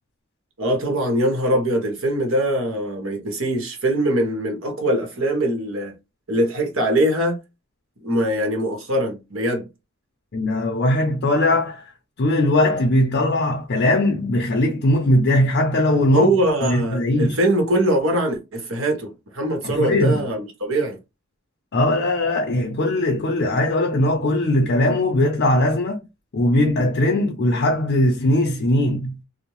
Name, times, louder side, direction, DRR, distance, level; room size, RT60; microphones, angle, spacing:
voice 1, 0.6-5.9 6.3-7.4 8.0-9.7 16.1-21.0, right 1 dB, 70° right, 1.2 m, -22 dB
voice 2, 10.3-11.9 12.2-16.3 16.6-17.4 19.6-20.2 21.7-26.0 26.3-29.2, left 1 dB, 55° left, 0.5 m, -20 dB
2.6 x 2.1 x 3.0 m
head